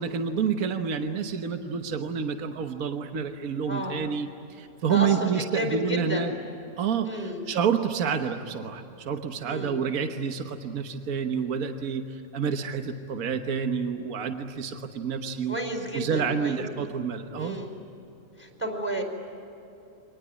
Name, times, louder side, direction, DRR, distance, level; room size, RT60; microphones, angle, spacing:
voice 1, 0.0-6.3 6.8-15.6 15.9-17.6, right 6 dB, 65° right, 6 dB, 1.6 m, -29 dB
voice 2, 3.7-4.0 4.9-6.3 7.0-7.4 9.4-9.8 15.5-16.7 17.4-17.7 18.4-19.0, right 1 dB, 5° left, 2 dB, 4.9 m, -32 dB
26.0 x 19.5 x 9.7 m, 2.8 s
omnidirectional pair, 1.7 m